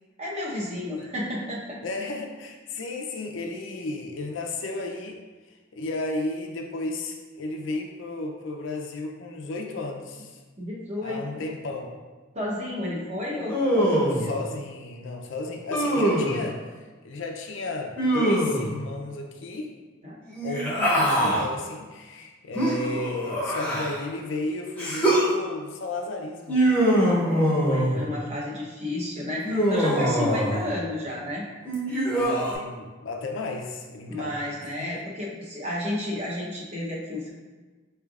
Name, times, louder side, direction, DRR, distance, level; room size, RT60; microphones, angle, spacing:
voice 1, 0.2-1.8 10.6-11.5 12.3-14.3 20.0-20.2 27.0-31.5 34.1-37.3, left 1 dB, 30° right, -4 dB, 0.8 m, -32 dB
voice 2, 1.8-5.2 5.7-10.4 11.0-11.9 14.2-16.6 17.0-19.8 20.4-26.7 32.1-34.3 34.9-35.0, left 2 dB, 65° left, 2 dB, 0.5 m, -33 dB
Human voice, 13.5-14.3 15.7-16.4 18.0-18.7 20.3-21.4 22.5-24.0 24.8-25.3 26.5-28.0 29.4-30.6 31.6-32.5, right 1 dB, 10° left, 0.7 m, -23 dB
4.8 x 3.3 x 2.4 m, 1.3 s
head